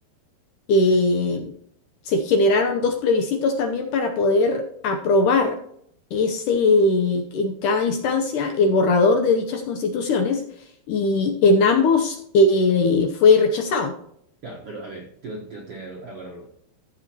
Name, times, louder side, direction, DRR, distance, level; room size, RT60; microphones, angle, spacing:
voice 1, 0.7-1.5 2.1-5.6 6.1-10.4 10.9-13.9, left 3 dB, 75° left, 4 dB, 2.0 m, -20 dB
voice 2, 14.4-16.5, right 2 dB, 65° right, -2 dB, 1.5 m, -37 dB
14.5 x 7.4 x 2.9 m, 0.69 s
omnidirectional pair, 4.4 m